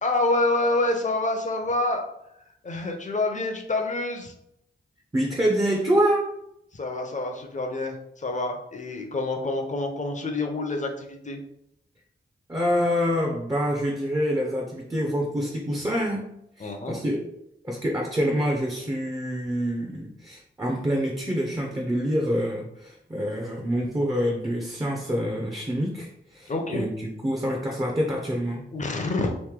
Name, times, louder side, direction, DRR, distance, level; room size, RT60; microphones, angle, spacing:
voice 1, 0.0-2.0 2.6-4.3 6.7-11.4 16.6-17.0 26.5-26.8 28.7-29.3, left 2 dB, 40° left, 3 dB, 0.7 m, -27 dB
voice 2, 5.1-6.2 12.5-16.2 16.6-17.2 17.6-28.6, equal, 20° right, 0 dB, 0.6 m, -26 dB
3.1 x 2.6 x 3.6 m, 0.79 s
wide cardioid pair, 75°, 20 cm